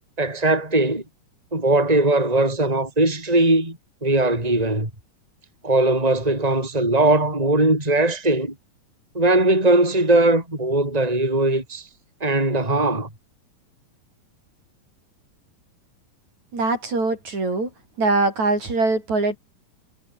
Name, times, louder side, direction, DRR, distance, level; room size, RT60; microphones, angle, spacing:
voice 1, 0.2-1.0 1.5-4.9 5.6-8.5 9.1-11.9 12.2-13.1, right 2 dB, 10° right, 5.6 m, -19 dB
voice 2, 16.5-17.7 18.0-19.4, right 3 dB, 55° right, 9.1 m, -22 dB
omnidirectional pair, 4.0 m